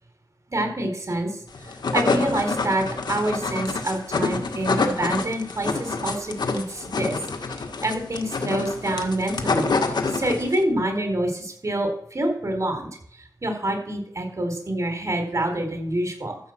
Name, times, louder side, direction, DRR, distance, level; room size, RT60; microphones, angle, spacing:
voice 1, 0.5-1.4 1.9-7.2 7.8-12.9 13.4-16.4, right 1 dB, 45° right, 4 dB, 4.5 m, -26 dB
sound 1, 1.5-10.6, left 4 dB, 80° left, 1.6 m, -27 dB
14.0 x 5.6 x 7.7 m, 0.66 s
cardioid pair, 50°, 7 cm